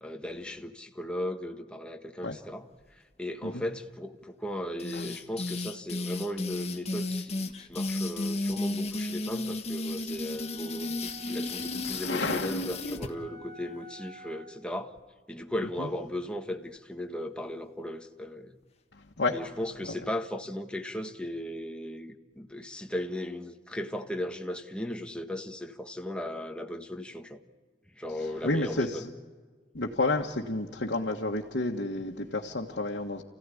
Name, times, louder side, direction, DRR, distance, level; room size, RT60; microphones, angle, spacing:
voice 1, 0.0-2.7 3.2-14.9 15.3-18.6 19.3-27.4 28.0-29.0, left 1 dB, 5° left, 1.4 m, -36 dB
sound 1, 4.8-13.1, left 2 dB, 35° left, 1.5 m, -33 dB
sound 2, 10.3-14.5, right 1 dB, 75° right, 5.5 m, -51 dB
voice 2, 11.9-12.6 15.8-15.9 19.2-19.3 28.4-29.0 29.7-33.2, left 2 dB, 80° left, 1.6 m, -30 dB
29.0 x 16.0 x 9.9 m
head